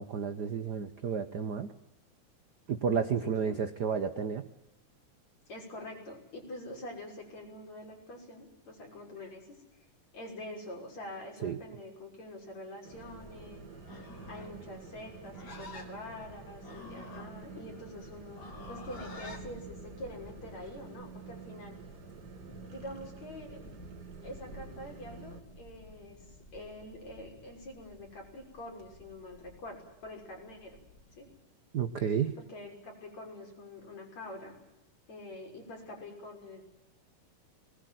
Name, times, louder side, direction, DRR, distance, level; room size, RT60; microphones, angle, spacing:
voice 1, 0.0-1.7 2.7-4.5 11.4-11.6 31.7-32.4, right 6 dB, 85° right, 10 dB, 0.9 m, -31 dB
voice 2, 5.5-9.6 10.1-13.6 14.3-21.8 22.7-23.6 24.2-26.2 26.5-30.8 31.2-31.3 32.5-34.6 35.1-36.7, left 1 dB, 60° left, 1 dB, 7.4 m, -45 dB
sound 1, 12.8-25.4, right 7 dB, 35° right, 2.0 m, -49 dB
sound 2, 12.9-31.4, left 1 dB, 10° left, 3.5 m, -54 dB
Livestock farm animals working animals, 13.8-19.5, left 3 dB, 40° left, 3.7 m, -49 dB
23.0 x 20.5 x 9.4 m, 0.90 s
omnidirectional pair, 3.5 m